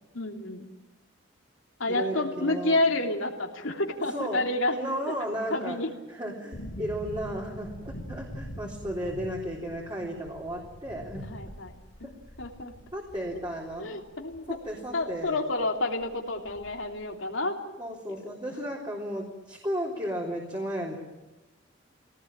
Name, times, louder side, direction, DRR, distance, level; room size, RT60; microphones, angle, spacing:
voice 1, 0.1-0.7 1.8-4.7 5.1-5.2 5.5-5.9 9.0-9.1 11.2-12.1 12.4-12.7 13.8-14.6 14.9-17.6, left 2 dB, 80° left, 2 dB, 3.1 m, -29 dB
voice 2, 1.9-2.8 4.1-4.4 4.7-5.8 6.1-11.2 12.9-14.0 14.5-15.4 17.8-21.0, equal, 20° right, -3 dB, 3.7 m, -34 dB
sound 1, 6.5-15.3 15.6-15.7 16.0-17.0 17.3-17.4, equal, 65° left, 3.0 m, -44 dB
23.5 x 18.5 x 8.9 m, 1.1 s
head